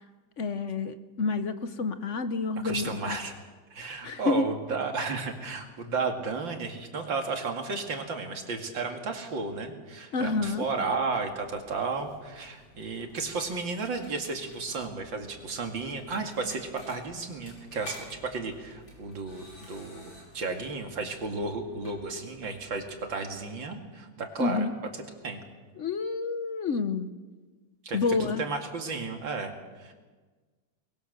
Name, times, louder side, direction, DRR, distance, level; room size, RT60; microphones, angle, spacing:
voice 1, 0.4-3.2 4.0-4.4 10.1-10.6 24.4-24.7 25.8-27.1 27.9-28.4, left 4 dB, 50° left, 11 dB, 1.0 m, -29 dB
voice 2, 2.6-3.4 3.7-24.7 25.2-25.4 27.8-29.9, right 4 dB, 75° right, 4 dB, 3.0 m, -33 dB
sound 1, 10.2-23.0, left 1 dB, 85° left, 6.3 m, -52 dB
23.0 x 21.5 x 6.8 m, 1.4 s
omnidirectional pair, 2.1 m